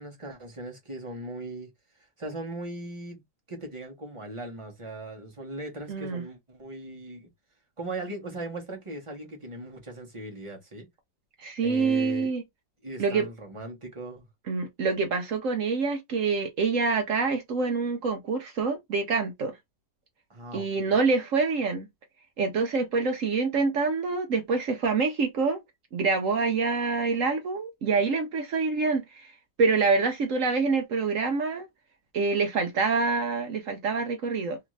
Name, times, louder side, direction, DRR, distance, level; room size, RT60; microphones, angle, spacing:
voice 1, 0.0-1.7 2.2-3.2 3.5-7.3 7.8-10.9 11.6-12.3 12.8-14.3 20.3-21.0, right 2 dB, 25° right, 0.6 m, -39 dB
voice 2, 5.9-6.2 11.4-12.4 13.0-13.3 14.5-19.5 20.5-21.9 22.4-25.6 25.9-29.3 29.6-31.7 32.1-34.6, right 4 dB, 60° right, 0.8 m, -26 dB
3.4 x 2.5 x 3.1 m
omnidirectional pair, 2.0 m